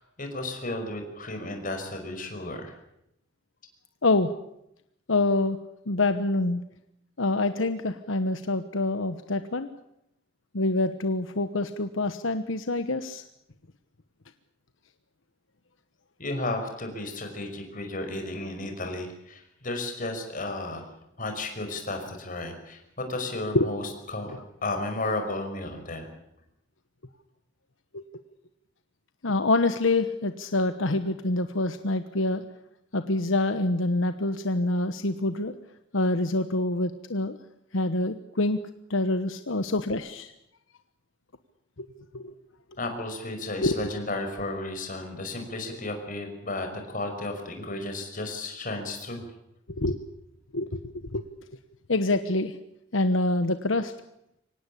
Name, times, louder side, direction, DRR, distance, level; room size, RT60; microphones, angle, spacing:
voice 1, 0.0-2.7 16.2-20.8 21.2-26.1 42.8-49.2, left 2 dB, 45° left, 5 dB, 5.5 m, -33 dB
voice 2, 5.1-5.6 5.9-6.6 7.2-9.7 10.5-13.2 23.5-23.7 27.9-28.0 29.2-32.4 32.9-35.5 35.9-37.4 37.7-38.6 38.9-40.3 42.1-42.3 43.6-43.9 49.8-50.0 50.5-51.2 51.9-52.5 52.9-53.9, left 2 dB, 80° left, 10 dB, 1.2 m, -26 dB
25.0 x 18.5 x 8.6 m, 0.81 s
head